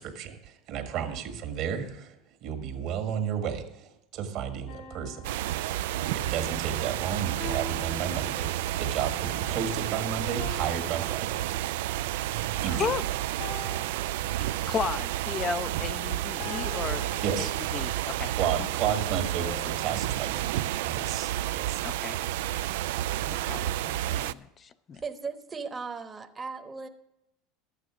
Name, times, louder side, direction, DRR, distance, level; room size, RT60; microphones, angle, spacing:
voice 1, 0.0-2.1 2.4-3.9 4.1-5.3 6.1-8.5 8.8-11.4 12.6-12.8 17.2-17.5 18.4-20.3 20.8-21.8, right 8 dB, 65° right, 7 dB, 1.7 m, -32 dB
sound 1, 4.7-6.3 7.4-8.9 10.4-12.1 13.4-14.9 16.4-18.1 19.4-20.4, left 4 dB, 65° left, 2.1 m, -45 dB
sound 2, 5.2-24.3, right 13 dB, 80° right, 0.3 m, -31 dB
voice 2, 12.7-13.0 14.4-17.0 17.4-18.3 18.6-18.7 21.8-22.2 23.3-25.0, left 6 dB, 35° left, 12 dB, 0.5 m, -34 dB
voice 3, 25.0-26.9, right 5 dB, 25° right, 7 dB, 1.0 m, -37 dB
12.0 x 8.3 x 6.2 m, 0.87 s
hypercardioid pair, 95°, 0 cm